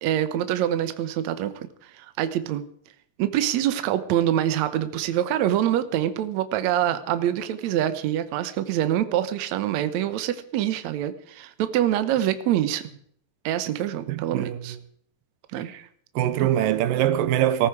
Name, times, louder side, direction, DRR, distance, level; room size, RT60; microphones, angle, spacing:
voice 1, 0.0-1.7 1.9-2.6 3.2-12.8 13.5-14.8 15.5-15.7 16.4-16.5, right 11 dB, 65° right, 2.1 m, -25 dB
voice 2, 14.1-14.6 15.6-15.8 16.2-17.7, right 11 dB, 85° right, 2.5 m, -23 dB
19.5 x 14.0 x 4.8 m
omnidirectional pair, 3.9 m